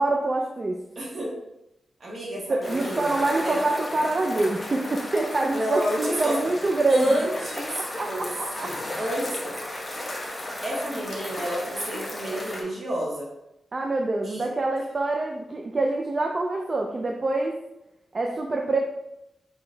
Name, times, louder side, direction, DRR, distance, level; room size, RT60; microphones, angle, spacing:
voice 1, 0.0-0.8 2.5-7.2 8.0-8.7 13.7-17.6 18.1-18.8, right 2 dB, 35° right, 1 dB, 0.4 m, -25 dB
voice 2, 0.9-1.3 2.0-3.2 3.4-3.6 5.5-6.4 6.9-8.3 8.6-9.6 9.9-10.2 10.6-13.3 14.2-14.5, equal, 55° right, -4 dB, 1.6 m, -30 dB
sound 1, 2.6-12.6, left 1 dB, 30° left, 0.9 m, -35 dB
3.9 x 3.1 x 3.8 m, 0.87 s
wide cardioid pair, 120°, 0 cm